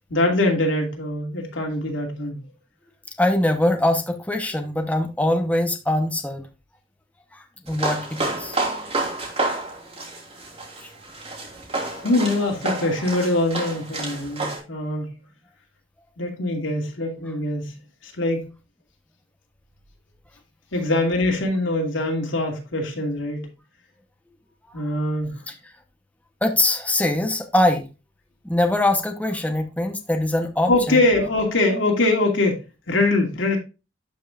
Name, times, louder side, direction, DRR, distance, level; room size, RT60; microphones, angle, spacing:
voice 1, 0.1-2.4 11.9-15.1 16.2-18.5 20.7-23.5 24.7-25.4 30.7-33.6, left 2 dB, 85° left, 2.5 m, -23 dB
voice 2, 3.2-6.5 7.3-8.6 10.8-10.9 25.5-25.6 26.4-27.9 28.4-31.0, left 1 dB, 10° left, 0.9 m, -22 dB
sound 1, 7.7-14.6, right 2 dB, 35° right, 3.1 m, -29 dB
12.0 x 5.4 x 2.4 m
head